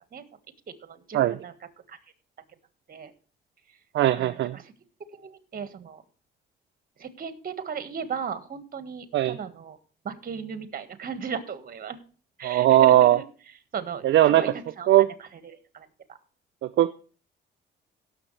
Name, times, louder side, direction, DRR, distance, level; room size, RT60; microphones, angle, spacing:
voice 1, 0.8-1.5 1.9-2.0 2.9-3.1 4.1-4.7 5.1-6.0 7.0-9.8 10.0-12.0 12.4-13.3 13.7-14.5 14.8-14.9 15.2-16.2, right 6 dB, 45° right, 11 dB, 1.6 m, -36 dB
voice 2, 3.9-4.6 9.1-9.4 12.4-13.2 14.0-14.4 14.9-15.1 16.6-16.9, right 13 dB, 65° right, 11 dB, 0.5 m, -19 dB
17.5 x 7.1 x 3.3 m, 0.38 s
cardioid pair, 90°, 20 cm